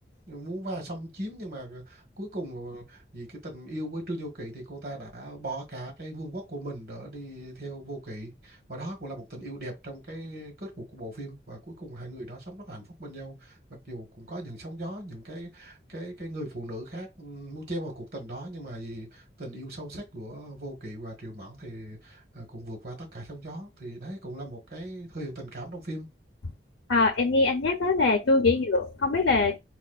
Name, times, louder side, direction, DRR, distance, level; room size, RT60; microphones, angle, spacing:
voice 1, 0.3-13.6 13.8-26.1 28.4-28.6, right 1 dB, 55° right, 1.4 m, -39 dB
voice 2, 26.9-29.6, left 3 dB, 90° left, 0.6 m, -23 dB
4.2 x 2.3 x 2.3 m
head